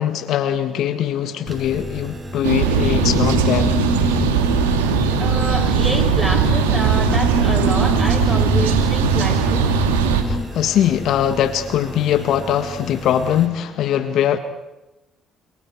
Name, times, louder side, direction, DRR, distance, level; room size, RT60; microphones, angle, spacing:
voice 1, 0.0-3.7 10.2-14.4, left 10 dB, 65° left, 1.7 m, -21 dB
sound 1, 1.5-13.5, right 1 dB, 25° right, 6.6 m, -34 dB
sound 2, 2.4-10.2, right 6 dB, 90° right, 2.7 m, -18 dB
sound 3, 2.7-10.5, left 3 dB, 30° left, 4.1 m, -28 dB
voice 2, 5.2-9.7, equal, 5° right, 7.7 m, -28 dB
28.5 x 27.5 x 4.8 m
hypercardioid pair, 55°, 0 cm